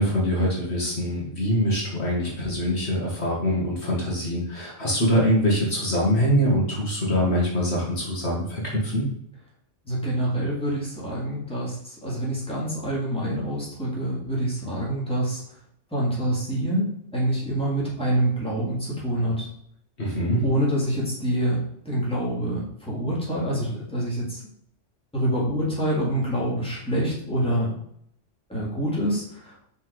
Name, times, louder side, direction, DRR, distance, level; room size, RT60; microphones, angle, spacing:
voice 1, 0.0-9.0 20.0-20.4, equal, 60° left, -3 dB, 2.1 m, -24 dB
voice 2, 9.9-15.4 15.9-19.5 20.4-24.4 25.1-27.7 28.5-29.5, right 1 dB, 5° left, -6 dB, 2.4 m, -26 dB
5.8 x 4.3 x 4.8 m, 0.71 s
omnidirectional pair, 1.2 m